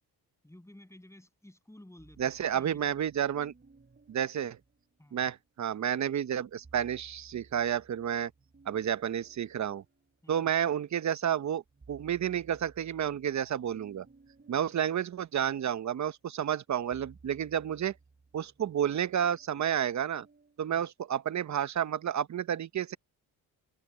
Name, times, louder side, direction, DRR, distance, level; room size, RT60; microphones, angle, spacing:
voice 1, 0.4-3.1 5.0-5.3 10.2-10.5 14.7-14.8 20.7-20.8, left 1 dB, 5° left, 7.2 m, -54 dB
sound 1, 2.0-5.5 6.4-10.9 11.3-20.6, right 4 dB, 30° right, 4.4 m, -60 dB
voice 2, 2.2-3.5 4.1-4.6 5.1-8.3 8.7-9.8 10.3-11.6 11.9-14.1 14.5-17.9 18.3-20.3 20.6-23.0, right 9 dB, 50° right, 0.9 m, -31 dB
cardioid pair, 80°, 38 cm